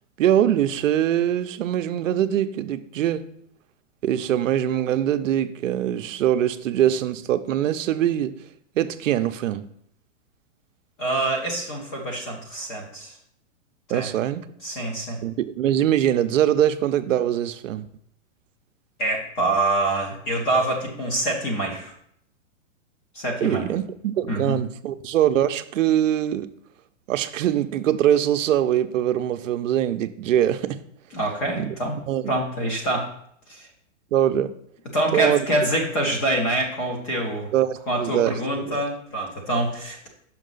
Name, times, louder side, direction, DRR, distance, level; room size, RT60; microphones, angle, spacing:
voice 1, 0.2-3.3 4.0-8.4 8.8-9.7 13.9-14.5 15.2-17.9 23.4-26.5 27.1-30.8 31.6-31.7 32.1-32.3 34.1-34.5 35.1-35.5 37.5-38.8, right 11 dB, 85° right, 0.6 m, -23 dB
voice 2, 11.0-13.2 13.9-14.1 14.6-15.2 19.0-21.9 23.1-23.7 24.3-24.6 31.1-32.0 32.3-33.1 33.5-33.7 34.9-37.5 37.9-40.1, right 1 dB, 10° left, 0.3 m, -25 dB
5.9 x 5.5 x 3.8 m
hypercardioid pair, 155°, 37 cm